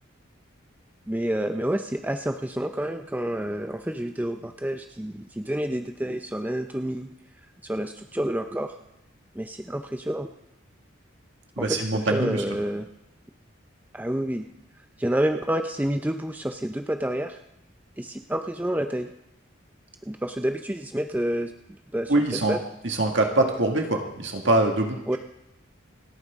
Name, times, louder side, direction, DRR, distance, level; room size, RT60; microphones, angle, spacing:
voice 1, 1.1-7.1 7.6-8.8 9.4-10.3 11.6-12.9 13.9-14.5 15.0-17.4 18.0-19.1 20.1-21.5 21.9-22.6 25.1-25.2, right 1 dB, 10° right, 6 dB, 0.5 m, -29 dB
voice 2, 11.6-12.4 22.1-22.6 22.8-25.2, right 2 dB, 65° right, 3 dB, 1.9 m, -24 dB
28.0 x 9.3 x 3.6 m, 0.83 s
head